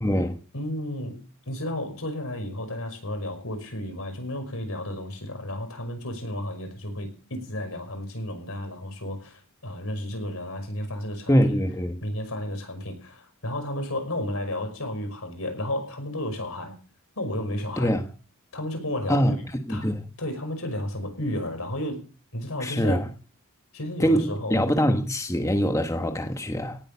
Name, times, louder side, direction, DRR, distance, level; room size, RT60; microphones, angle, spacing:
voice 1, 0.0-0.4 11.3-12.0 17.8-18.0 19.1-19.4 19.7-20.0 22.6-23.1 24.0-26.8, equal, 15° left, 1.2 m, -23 dB
voice 2, 0.5-11.6 12.0-16.8 17.2-18.0 18.5-19.3 19.7-19.9 20.2-22.0 22.3-23.0 23.7-24.6, left 1 dB, 70° left, 5.6 m, -32 dB
18.0 x 8.9 x 7.0 m
head